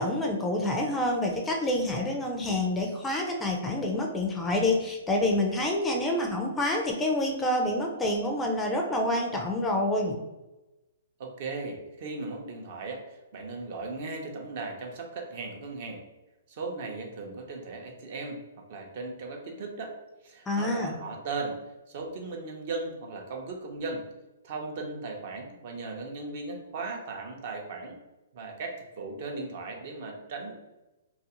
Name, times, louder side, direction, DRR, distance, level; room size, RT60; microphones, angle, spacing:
voice 1, 0.0-10.2 20.5-20.9, left 1 dB, 10° left, 1 dB, 0.4 m, -27 dB
voice 2, 11.2-16.0 16.5-18.4 18.7-19.9 20.2-21.6 21.9-24.0 24.4-28.0 28.3-30.5, right 3 dB, 50° right, 2 dB, 0.6 m, -37 dB
2.4 x 2.4 x 2.9 m, 1.0 s
hypercardioid pair, 145°, 0 cm